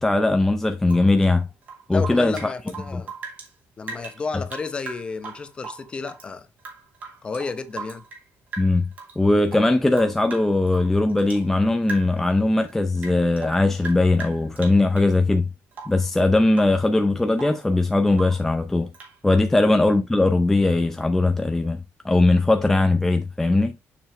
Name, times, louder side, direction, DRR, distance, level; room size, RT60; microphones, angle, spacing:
voice 1, 0.0-1.5 1.9-2.5 2.9-3.0 8.6-8.9 9.2-15.5 15.9-18.9 19.2-21.8 22.0-23.8, left 2 dB, 10° left, 0.5 m, -20 dB
Rain / Drip, 0.8-3.5 3.8-6.3 6.6-8.3 8.5-9.2 9.5-11.5 11.8-12.3 12.6-15.1 15.7-16.1 16.5-16.8 17.1-17.7 18.1-18.5 18.9-19.2, right 4 dB, 40° right, 2.7 m, -39 dB
voice 2, 1.9-3.1 3.8-6.5 7.2-8.0, left 4 dB, 25° left, 0.9 m, -32 dB
7.0 x 6.1 x 3.1 m
cardioid pair, 165°, 4 cm